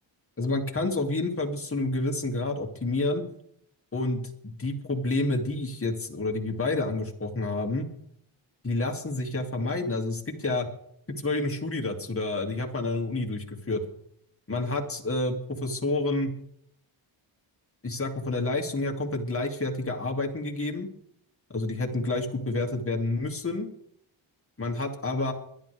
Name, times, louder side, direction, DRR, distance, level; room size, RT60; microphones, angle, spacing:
voice 1, 0.4-3.2 3.9-7.9 8.6-10.7 11.2-13.8 14.5-16.3 17.8-20.9 21.5-23.7 24.6-25.3, left 2 dB, 25° left, 1 dB, 2.6 m, -29 dB
22.0 x 11.0 x 3.5 m, 0.70 s
cardioid pair, 60°, 49 cm